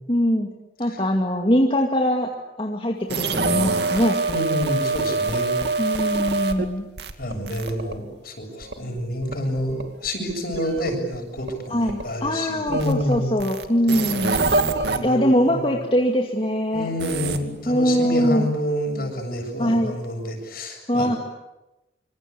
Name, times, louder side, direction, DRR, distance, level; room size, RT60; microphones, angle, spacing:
voice 1, 0.1-0.5 0.8-2.3 2.6-4.2 5.8-6.9 11.7-14.4 15.0-16.9 17.7-18.5 19.6-19.9 20.9-21.2, equal, 30° left, 1 dB, 2.4 m, -22 dB
sound 1, 3.1-6.7 7.0-8.0 8.6-12.3 12.7-15.0 17.0-17.4, right 3 dB, 65° right, 2.4 m, -26 dB
voice 2, 4.3-6.2 7.2-13.3 14.4-15.6 16.7-21.2, equal, 55° left, 5 dB, 7.6 m, -28 dB
26.5 x 26.0 x 8.6 m, 0.97 s
head